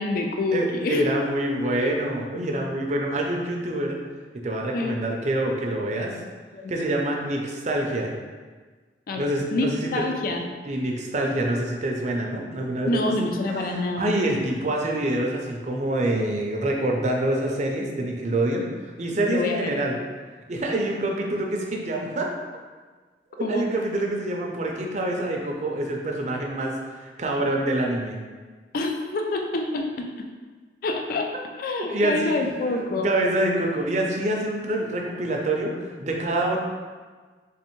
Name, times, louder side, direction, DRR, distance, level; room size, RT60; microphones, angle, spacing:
voice 1, 0.0-1.1 4.7-5.0 6.5-6.7 9.1-9.3 9.5-10.5 12.8-14.2 19.3-19.7 23.4-23.7 28.7-30.3 30.8-31.3 31.6-33.1, left 2 dB, 50° left, 3 dB, 0.3 m, -27 dB
voice 2, 0.5-4.0 4.4-6.2 6.7-8.1 9.2-9.9 10.7-18.7 19.0-20.0 20.5-22.3 23.5-28.2 31.9-36.6, right 1 dB, 40° right, 0 dB, 0.4 m, -26 dB
3.3 x 3.2 x 3.0 m, 1.4 s
head